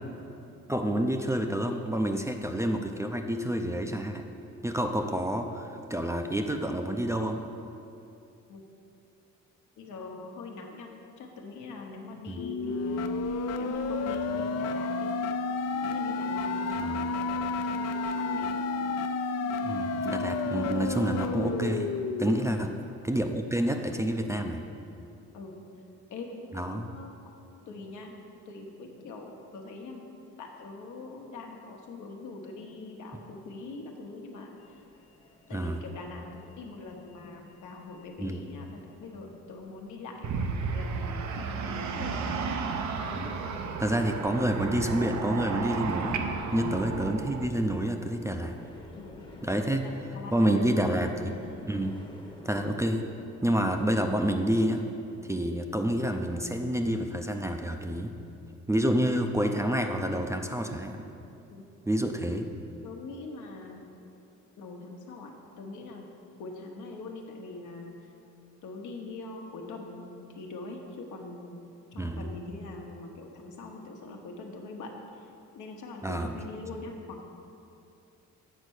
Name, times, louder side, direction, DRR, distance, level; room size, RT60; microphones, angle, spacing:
voice 1, 0.7-4.2 4.6-7.4 12.3-12.4 16.8-17.1 19.6-21.9 22.2-22.7 23.0-24.6 26.5-26.9 35.5-35.8 38.2-38.4 43.1-43.3 43.8-46.2 46.5-48.6 49.4-49.9 50.3-51.3 51.7-52.0 52.5-53.0 53.4-54.9 55.3-58.1 58.7-61.0 61.9-62.5 72.0-72.3 76.0-76.4, right 1 dB, 10° right, 4 dB, 0.4 m, -28 dB
voice 2, 9.8-15.1 15.8-18.5 22.4-22.6 25.3-25.6 26.1-27.1 27.7-28.1 28.5-30.0 30.4-34.6 35.5-36.3 36.6-42.6 46.5-46.8 48.9-49.2 49.8-51.1 51.4-51.5 61.5-61.6 62.8-64.0 64.6-66.1 66.4-68.1 68.6-71.6 71.9-75.3 75.5-77.2, left 3 dB, 80° left, 1 dB, 1.1 m, -43 dB
sound 1, 12.4-22.4, left 3 dB, 55° left, 0.5 m, -31 dB
sound 2, 34.6-52.9, left 2 dB, 15° left, 0.9 m, -52 dB
sound 3, 40.2-47.5, right 5 dB, 70° right, 0.7 m, -33 dB
8.2 x 4.4 x 6.3 m, 2.7 s
cardioid pair, 90°, 30 cm